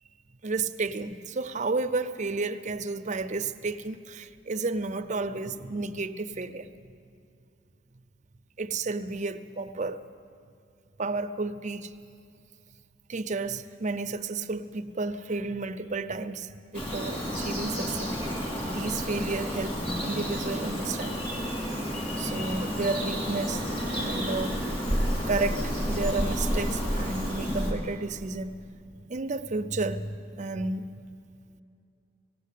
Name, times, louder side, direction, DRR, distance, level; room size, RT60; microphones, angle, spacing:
voice 1, 0.4-6.7 8.6-10.0 11.0-11.9 13.1-18.2 18.6-21.2 22.2-24.7 25.3-28.5 29.1-30.9, right 3 dB, 40° right, 9 dB, 0.6 m, -32 dB
Bird vocalization bird call bird song, 16.7-27.7, equal, 30° left, 4.1 m, -30 dB
19.0 x 16.5 x 8.4 m, 2.5 s
head